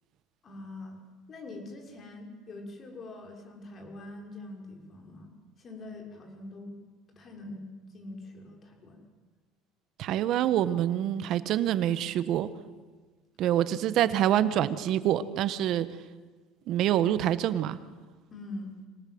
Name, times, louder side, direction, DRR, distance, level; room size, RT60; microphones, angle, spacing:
voice 1, 0.4-1.0 1.3-5.3 5.6-6.7 7.1-7.7 7.9-9.0 18.3-18.8, left 2 dB, 40° left, 2 dB, 6.1 m, -43 dB
voice 2, 10.0-12.5 13.4-15.9 16.7-17.8, right 11 dB, 60° right, 13 dB, 1.4 m, -26 dB
26.0 x 18.5 x 8.0 m, 1.4 s
supercardioid pair, 100°, 0 cm